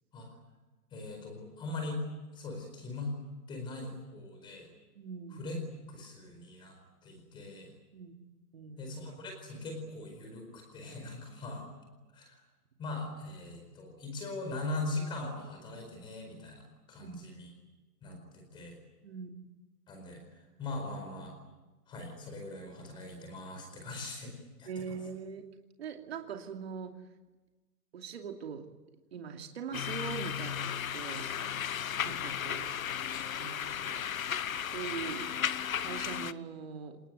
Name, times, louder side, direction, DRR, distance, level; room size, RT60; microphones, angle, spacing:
voice 1, 0.9-2.0 2.3-3.2 3.5-4.7 5.3-5.6 5.9-6.8 7.0-7.7 8.8-11.6 12.1-12.4 12.8-17.5 18.0-18.8 19.9-21.4 21.9-24.8, left 2 dB, 10° left, 4 dB, 4.6 m, -40 dB
voice 2, 4.9-5.4 7.9-8.1 8.5-8.9 17.0-17.2 19.0-19.3 24.7-25.4 25.8-27.0 27.9-28.7 29.1-31.3 32.0-32.7 33.4-33.9 34.6-35.3 35.8-37.0, right 6 dB, 40° right, 4 dB, 2.7 m, -42 dB
sound 1, 29.7-36.3, left 9 dB, 55° left, 1.0 m, -35 dB
26.5 x 20.0 x 9.5 m, 1.2 s
hypercardioid pair, 170°, 48 cm